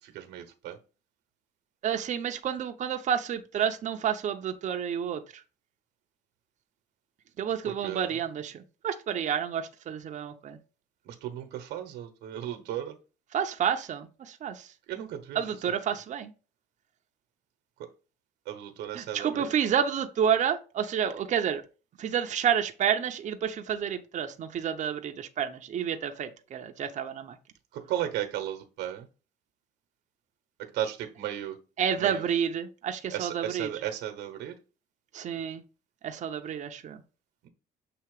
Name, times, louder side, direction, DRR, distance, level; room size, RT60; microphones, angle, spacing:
voice 1, 0.0-0.8 7.6-8.2 11.0-13.0 14.9-15.7 17.8-17.9 18.4-19.5 27.7-29.1 30.6-31.6 32.0-32.2 33.1-34.5 37.4-37.5, right 11 dB, 85° right, 1.0 m, -35 dB
voice 2, 1.8-5.2 7.4-10.6 13.3-14.7 15.3-16.3 18.9-21.6 22.0-27.4 31.8-33.7 35.1-35.6 36.0-37.0, right 8 dB, 45° right, 0.7 m, -30 dB
6.8 x 2.8 x 4.8 m
cardioid pair, 110°, 17 cm